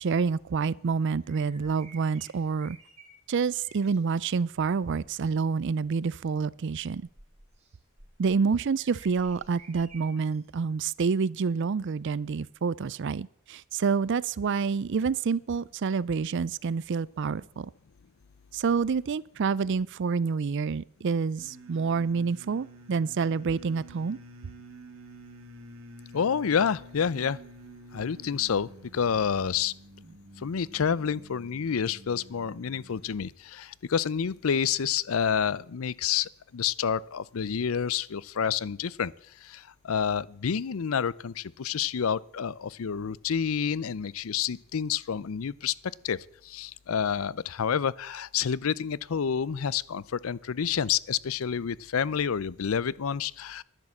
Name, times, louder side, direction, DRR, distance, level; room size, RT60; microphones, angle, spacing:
voice 1, 0.0-2.8 3.3-7.0 8.2-17.7 18.5-24.2, right 5 dB, 60° right, 0.4 m, -28 dB
sound 1, 1.2-4.0 4.8-5.2 5.8-10.5 11.0-11.1 12.9-13.0, right 3 dB, 35° right, 3.1 m, -54 dB
sound 2, 21.4-33.3, right 1 dB, 90° right, 2.1 m, -49 dB
voice 2, 26.1-27.4 27.9-29.7 30.4-39.1 39.4-45.7 46.0-53.6, left 7 dB, 80° left, 0.5 m, -29 dB
11.0 x 10.5 x 7.1 m
head